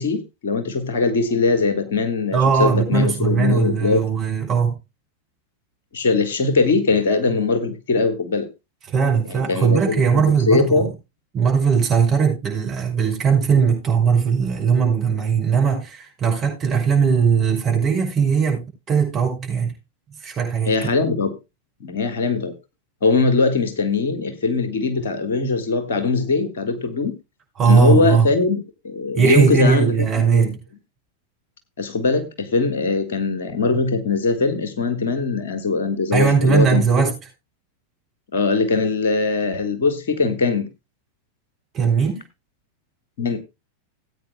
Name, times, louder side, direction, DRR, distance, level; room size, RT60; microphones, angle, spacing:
voice 1, 0.0-4.0 5.9-8.5 9.3-10.9 20.7-21.4 21.8-22.5 23.0-27.1 27.6-30.5 31.8-37.1 38.3-40.7 43.2-43.4, left 4 dB, 60° left, 1.7 m, -21 dB
voice 2, 2.3-4.7 8.9-10.9 11.3-18.6 18.9-19.7 20.2-20.7 27.6-28.3 29.1-30.6 36.1-37.1 41.7-42.2, right 6 dB, 30° right, 5.8 m, -19 dB
19.0 x 9.0 x 2.3 m
figure-of-eight pair, 90°, 0 cm